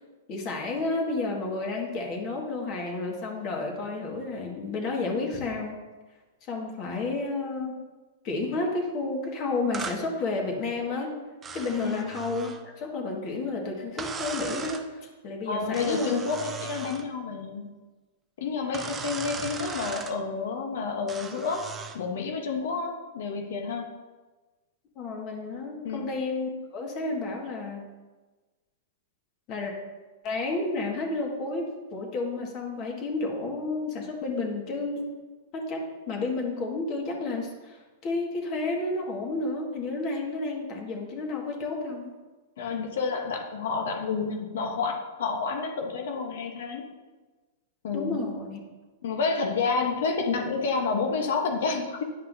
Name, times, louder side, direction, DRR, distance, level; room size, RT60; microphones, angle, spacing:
voice 1, 0.3-5.8 6.5-7.8 8.2-11.1 11.5-16.2 25.0-27.8 29.5-29.7 30.2-35.1 35.5-42.1 47.9-48.6, left 3 dB, 40° left, 0 dB, 1.7 m, -31 dB
sound 1, 9.7-10.0 11.4-12.6 14.0-14.9 15.7-17.1 18.7-20.2 21.1-22.0, right 5 dB, 20° right, 0.6 m, -38 dB
voice 2, 15.5-17.7 18.4-21.7 21.9-23.9 25.8-26.1 42.6-46.9 47.8-48.2 49.0-52.0, left 4 dB, 70° left, 3 dB, 1.0 m, -29 dB
9.7 x 5.5 x 2.7 m, 1.3 s
hypercardioid pair, 125°, 0 cm